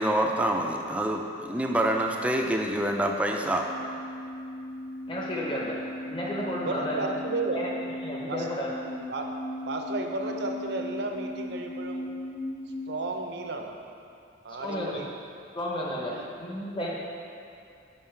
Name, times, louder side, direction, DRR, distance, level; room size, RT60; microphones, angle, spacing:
voice 1, 0.0-3.7, right 1 dB, 5° right, 2 dB, 0.3 m, -26 dB
sound 1, 3.3-12.9, left 1 dB, 65° left, 0.5 m, -37 dB
voice 2, 5.1-5.8 6.1-7.1 7.5-7.7 8.0-8.7 14.5-15.0 15.5-17.0, left 1 dB, 25° left, -3 dB, 0.9 m, -32 dB
voice 3, 6.6-7.7 8.3-8.5 9.1-9.3 9.7-12.1 12.9-13.8 14.4-15.1 16.1-16.3, right 2 dB, 60° right, 3 dB, 0.5 m, -33 dB
5.7 x 5.5 x 4.4 m, 2.5 s
head